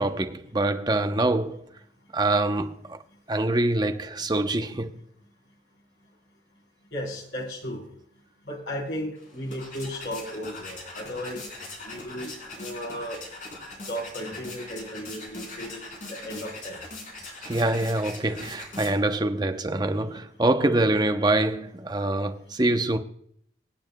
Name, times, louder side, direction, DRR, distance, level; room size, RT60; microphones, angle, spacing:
voice 1, 0.0-1.6 2.1-3.0 3.3-5.0 17.4-23.0, right 2 dB, 25° right, 0.6 m, -25 dB
voice 2, 6.9-7.8 8.5-11.5 11.8-13.2 13.9-15.8 16.1-16.8, equal, 90° left, 3.7 m, -35 dB
sound 1, 9.2-19.2, left 2 dB, 45° left, 4.0 m, -41 dB
25.0 x 8.8 x 2.2 m
head